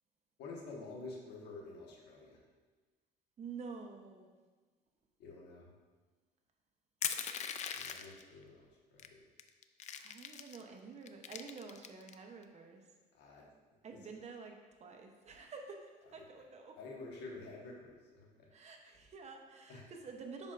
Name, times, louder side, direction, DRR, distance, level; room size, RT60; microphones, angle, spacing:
voice 1, 0.4-2.4 5.2-5.7 7.7-9.2 13.1-13.4 16.2-16.4 16.8-18.5 19.7-19.8, left 3 dB, 85° left, -1 dB, 1.4 m, -49 dB
voice 2, 3.4-4.3 10.0-12.8 13.8-16.8 18.5-20.5, right 4 dB, 40° right, 3 dB, 0.8 m, -49 dB
Crushing, 7.0-8.2 9.0-9.1 9.4-10.6 11.1-12.1, left 8 dB, 45° left, 0.4 m, -40 dB
7.1 x 5.5 x 2.5 m, 1.3 s
cardioid pair, 110°, 17 cm